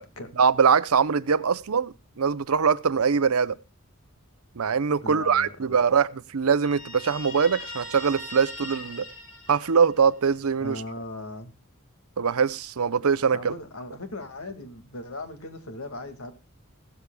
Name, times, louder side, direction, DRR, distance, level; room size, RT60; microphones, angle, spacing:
voice 1, 0.4-3.6 4.6-9.1 9.5-10.8 12.2-13.5, right 6 dB, 85° right, 0.7 m, -23 dB
voice 2, 5.0-6.0 10.6-11.5 13.3-16.3, left 2 dB, 80° left, 2.0 m, -38 dB
Guitar, 6.6-10.2, left 1 dB, 55° left, 4.2 m, -40 dB
15.5 x 13.0 x 2.2 m
head